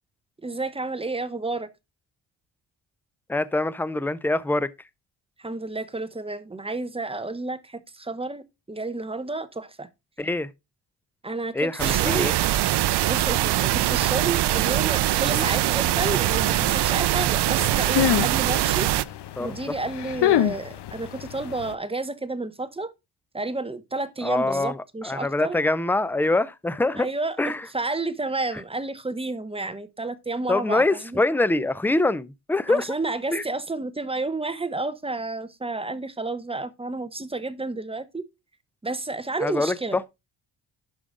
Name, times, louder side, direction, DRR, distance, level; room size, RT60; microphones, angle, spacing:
voice 1, 0.4-1.7 5.4-9.9 11.2-12.3 13.0-18.9 19.4-22.9 23.3-25.6 27.0-27.4 27.7-31.2 32.7-38.3 38.8-40.0, right 2 dB, 10° right, 0.8 m, -31 dB
voice 2, 3.3-4.7 10.2-10.5 11.5-12.3 15.2-15.5 16.0-16.1 19.4-19.5 24.2-27.1 27.4-27.7 30.5-32.9 33.3-33.4 39.4-40.0, left 2 dB, 5° left, 0.4 m, -24 dB
sound 1, 11.8-19.0, right 14 dB, 60° right, 0.6 m, -22 dB
sound 2, 15.7-21.7, left 12 dB, 60° left, 0.9 m, -28 dB
11.5 x 5.0 x 3.8 m
cardioid pair, 105°, 47 cm